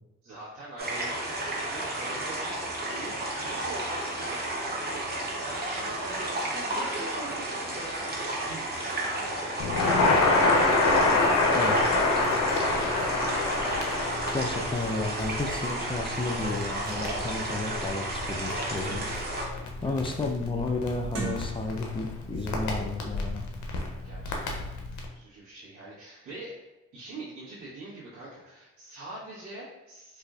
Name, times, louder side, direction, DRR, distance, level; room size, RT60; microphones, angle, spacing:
voice 1, 0.2-10.6 11.4-13.0 19.4-20.1 24.0-30.2, right 2 dB, 90° right, -12 dB, 1.3 m, -44 dB
sound 1, 0.8-19.4, right 1 dB, 35° right, 0.9 m, -32 dB
Crackle, 9.6-25.1, left 2 dB, 75° left, 0.7 m, -27 dB
voice 2, 14.3-19.1 19.8-23.5, left 3 dB, 15° left, 3 dB, 0.4 m, -32 dB
sound 2, 16.9-17.0 17.6-17.7 18.1-19.4 19.8-20.2 21.0-22.0 22.3-22.6, right 3 dB, 55° right, 0.8 m, -40 dB
4.5 x 2.5 x 2.4 m, 0.99 s
cardioid pair, 90°, 30 cm